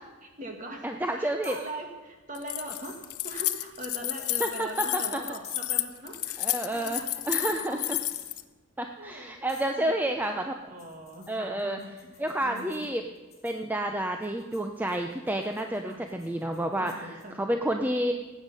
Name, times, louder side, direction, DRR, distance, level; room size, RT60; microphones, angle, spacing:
voice 1, 0.2-0.9 1.2-8.0 9.0-9.4 9.7-12.9 15.8-16.1 16.6-17.6, right 1 dB, 35° right, 3 dB, 1.8 m, -42 dB
voice 2, 0.8-1.6 4.4-5.2 6.4-8.0 8.8-10.5 11.3-11.8 12.2-13.0 13.4-18.1, right 1 dB, 10° right, 4 dB, 0.5 m, -30 dB
sound 1, 1.4-1.7 2.8-3.0 4.1-4.4 5.4-5.7 6.7-6.9 8.1-8.4 9.5-9.7 10.8-13.6 14.2-17.2, left 7 dB, 25° left, 2.4 m, -50 dB
Keys jangling, 2.3-8.4, left 17 dB, 80° left, 0.6 m, -31 dB
18.5 x 8.2 x 5.5 m, 1.2 s
head